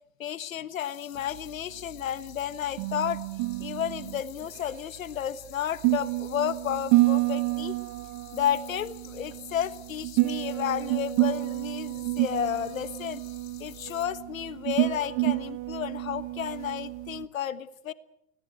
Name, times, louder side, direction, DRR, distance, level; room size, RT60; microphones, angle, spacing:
voice 1, 0.2-3.2 3.6-7.8 8.3-13.2 13.6-17.9, left 10 dB, 75° left, 15 dB, 1.4 m, -32 dB
sound 1, 0.8-14.1, left 14 dB, 50° left, 5.0 m, -52 dB
sound 2, 1.2-17.3, right 20 dB, 40° right, 1.3 m, -29 dB
25.0 x 18.0 x 7.9 m, 0.82 s
hypercardioid pair, 105°, 41 cm